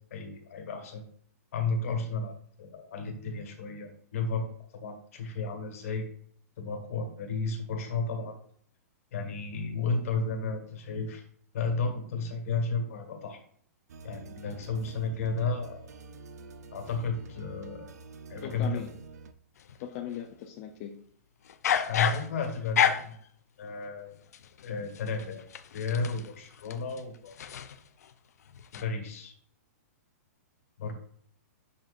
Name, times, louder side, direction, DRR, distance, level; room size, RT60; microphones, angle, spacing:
voice 1, 0.1-1.0 1.5-4.5 4.7-6.1 6.6-8.4 9.1-11.2 11.5-13.4 14.0-15.9 16.7-17.9 18.3-18.9 21.9-23.2 23.6-24.2 24.6-25.5 25.7-27.3 28.7-29.3 30.8-30.9, left 4 dB, 60° left, 4 dB, 1.6 m, -33 dB
sound 1, 13.9-19.3, right 4 dB, 80° right, 0.6 m, -48 dB
voice 2, 18.4-18.9 19.8-20.9, left 10 dB, 35° left, 1 dB, 0.6 m, -38 dB
sound 2, 19.6-20.2 21.4-23.3 24.3-28.1 28.5-28.8, left 8 dB, 75° left, 0.6 m, -31 dB
7.3 x 5.4 x 2.5 m, 0.63 s
hypercardioid pair, 155°, 9 cm